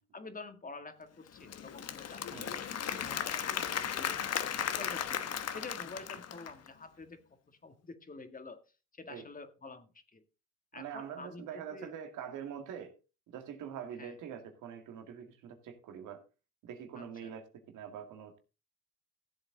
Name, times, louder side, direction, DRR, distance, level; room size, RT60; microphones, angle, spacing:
voice 1, 0.1-8.6 8.9-10.2 10.7-11.9 14.0-14.2 17.0-17.3, left 3 dB, 30° left, 1.9 m, -49 dB
Applause / Crowd, 1.3-6.7, left 8 dB, 55° left, 1.2 m, -36 dB
voice 2, 10.7-12.9 13.3-16.2 16.6-18.4, right 8 dB, 90° right, 2.2 m, -44 dB
14.5 x 7.8 x 3.9 m
cardioid pair, 90°, 30 cm